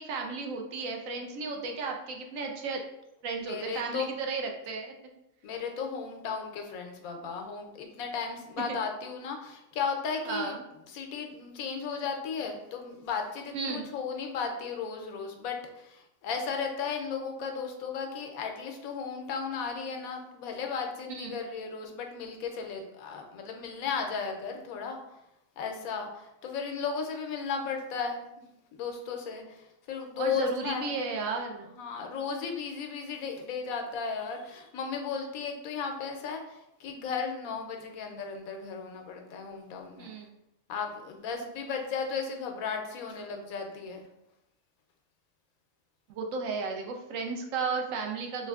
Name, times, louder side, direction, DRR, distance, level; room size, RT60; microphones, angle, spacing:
voice 1, 0.0-2.8 3.2-4.9 8.7-8.8 10.3-10.6 13.5-13.9 21.1-21.4 30.2-31.7 40.0-40.3 46.1-48.5, right 4 dB, 75° right, 2 dB, 0.9 m, -34 dB
voice 2, 3.4-4.1 5.4-10.6 10.9-25.2 25.6-28.2 28.7-31.0 31.6-40.1 40.7-44.1, left 5 dB, 80° left, 4 dB, 1.0 m, -35 dB
4.2 x 2.5 x 2.3 m, 0.86 s
omnidirectional pair, 1.4 m